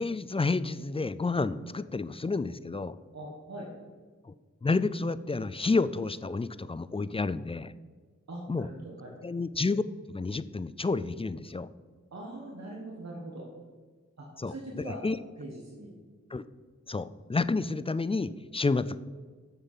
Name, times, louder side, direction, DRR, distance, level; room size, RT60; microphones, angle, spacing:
voice 1, 0.0-3.0 4.2-4.3 4.6-7.7 8.5-8.7 9.2-9.8 10.1-11.7 14.4-15.2 16.3-16.4 16.9-19.0, left 3 dB, 20° left, 15 dB, 0.3 m, -30 dB
voice 2, 3.1-3.7 8.3-9.1 12.1-13.4 14.2-15.0 15.4-15.9, right 1 dB, 65° right, -2 dB, 1.6 m, -42 dB
7.2 x 7.0 x 5.7 m, 1.5 s
cardioid pair, 45°, 29 cm